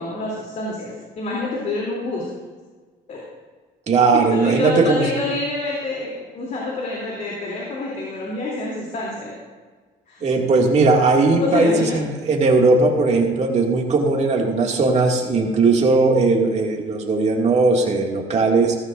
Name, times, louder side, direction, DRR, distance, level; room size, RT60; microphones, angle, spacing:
voice 1, 0.0-2.3 3.1-3.2 4.1-9.3 10.1-10.2 11.3-12.1, left 2 dB, 50° left, -4 dB, 3.1 m, -27 dB
voice 2, 3.9-5.1 10.2-18.8, right 3 dB, 40° right, 0 dB, 2.3 m, -18 dB
16.5 x 14.0 x 2.6 m, 1.4 s
cardioid pair, 110°, 17 cm